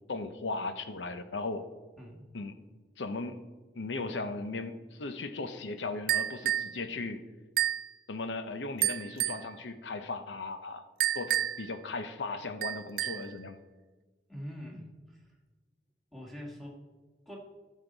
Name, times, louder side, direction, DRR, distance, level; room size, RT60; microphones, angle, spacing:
voice 1, 0.0-1.7 2.3-2.6 3.0-3.4 3.7-7.2 8.1-10.8 11.1-13.6, left 3 dB, 85° left, 10 dB, 0.8 m, -37 dB
sound 1, 6.1-6.7 7.6-7.9 8.8-9.5 11.0-11.7 12.6-13.3, right 12 dB, 55° right, 0.3 m, -30 dB
voice 2, 14.3-15.2 16.1-16.7 17.2-17.4, equal, ahead, -2 dB, 1.6 m, -44 dB
14.5 x 6.5 x 4.0 m, 1.3 s
head